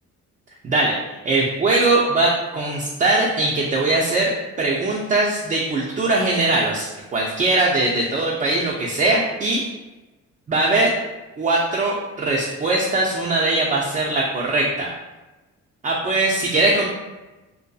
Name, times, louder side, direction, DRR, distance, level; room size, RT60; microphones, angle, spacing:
voice 1, 0.6-1.0 1.2-9.6 10.5-11.0 11.4-14.9 15.8-16.9, right 2 dB, 25° right, -3 dB, 0.3 m, -21 dB
2.6 x 2.2 x 2.2 m, 1.1 s
cardioid pair, 90°, 30 cm